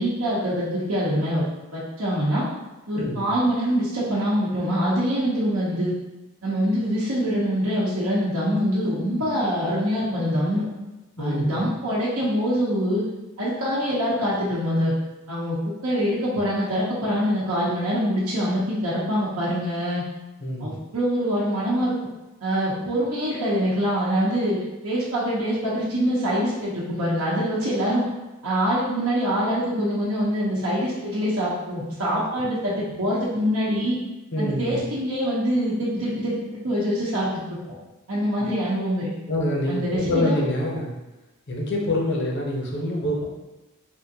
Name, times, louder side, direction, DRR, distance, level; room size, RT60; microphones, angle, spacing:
voice 1, 0.0-1.4 1.7-2.5 2.9-5.9 6.4-10.6 11.2-13.0 13.4-14.9 15.3-15.6 15.8-20.0 20.6-21.9 22.4-28.0 28.4-34.0 34.4-37.3 38.1-39.1 39.7-40.4, equal, 85° right, -7 dB, 0.8 m, -24 dB
voice 2, 3.0-3.3 11.2-11.6 20.4-20.7 32.3-32.4 34.3-34.8 39.3-40.9 41.5-43.2, left 1 dB, 55° left, -1 dB, 0.7 m, -26 dB
3.6 x 2.5 x 2.7 m, 1.0 s
head